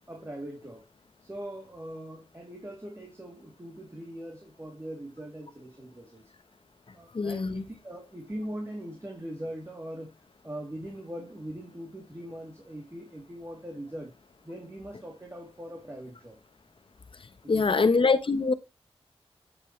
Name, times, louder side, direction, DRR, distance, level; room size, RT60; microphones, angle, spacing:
voice 1, 0.1-0.9 1.2-6.3 6.9-10.2 10.4-14.1 14.4-16.4 17.4-17.9, right 1 dB, 25° right, 3.2 m, -41 dB
voice 2, 7.1-7.6 17.5-18.5, left 4 dB, 55° left, 1.1 m, -23 dB
10.0 x 7.3 x 3.3 m
cardioid pair, 55°, 10 cm